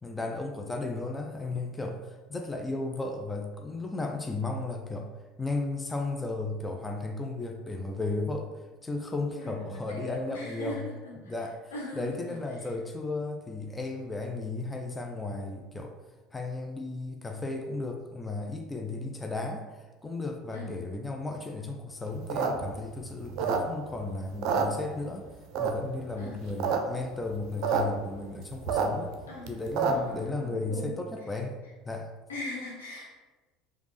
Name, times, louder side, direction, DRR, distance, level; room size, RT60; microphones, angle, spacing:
voice 1, 0.0-5.1 5.4-8.5 8.8-10.8 11.2-16.0 16.3-25.3 25.6-29.1 29.5-32.1, left 2 dB, 15° left, 3 dB, 0.5 m, -34 dB
voice 2, 9.3-11.4 11.7-12.7 20.5-20.7 26.2-26.4 29.3-29.6 29.9-30.9 32.3-33.1, left 2 dB, 85° left, -4 dB, 1.1 m, -40 dB
sound 1, 22.1-24.0 24.3-25.2 25.5-26.0 26.4-26.8 27.0-27.1 27.3-27.8 28.2-30.2, right 6 dB, 55° right, 0.5 m, -28 dB
5.1 x 2.5 x 3.2 m, 1.2 s
hypercardioid pair, 70°, 0 cm